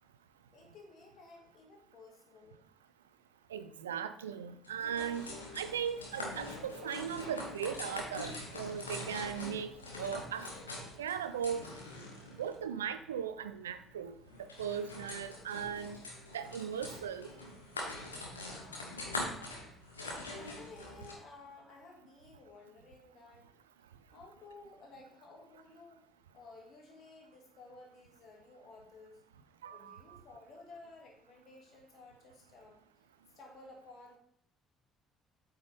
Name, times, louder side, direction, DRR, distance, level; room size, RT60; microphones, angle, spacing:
voice 1, 0.5-2.6 18.5-19.5 20.1-23.4 24.1-26.1 26.3-29.2 29.7-32.8 33.3-34.2, left 3 dB, 50° left, 0 dB, 2.1 m, -55 dB
voice 2, 3.5-5.3 5.5-10.5 11.0-11.7 12.4-16.0 16.3-17.3 29.6-30.2, right 8 dB, 80° right, 12 dB, 0.4 m, -38 dB
sound 1, 4.6-21.1, left 2 dB, 85° left, 1.3 m, -44 dB
8.5 x 5.4 x 3.5 m, 0.71 s
figure-of-eight pair, 50°, 0 cm